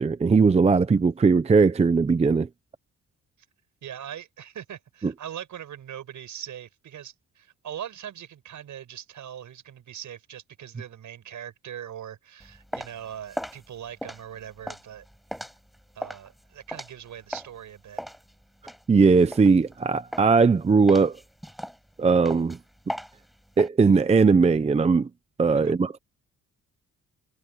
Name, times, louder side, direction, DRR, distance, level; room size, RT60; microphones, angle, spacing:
voice 1, 0.0-2.5 5.0-5.1 18.9-21.2 22.0-22.6 23.6-25.1 25.4-26.0, right 4 dB, 20° right, 0.6 m, -19 dB
voice 2, 3.8-15.0 15.9-18.0 25.6-25.7, right 10 dB, 60° right, 6.8 m, -41 dB
sound 1, 12.4-17.6 18.0-19.8 20.1-20.5 20.9-23.7, equal, ahead, 5.6 m, -38 dB
cardioid pair, 135°, 33 cm